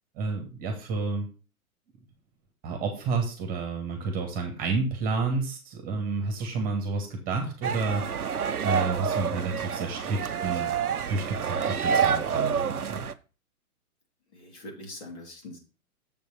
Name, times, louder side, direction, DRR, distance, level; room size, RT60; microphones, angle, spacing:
voice 1, 0.2-1.3 2.6-8.3 8.6-10.7 11.1-13.1, right 4 dB, 20° right, 3 dB, 1.8 m, -30 dB
sound 1, 7.6-13.1, right 7 dB, 85° right, 0.7 m, -28 dB
voice 2, 14.3-15.6, left 1 dB, 50° left, 1 dB, 3.0 m, -42 dB
7.5 x 5.2 x 5.3 m, 0.34 s
figure-of-eight pair, 120°, 43 cm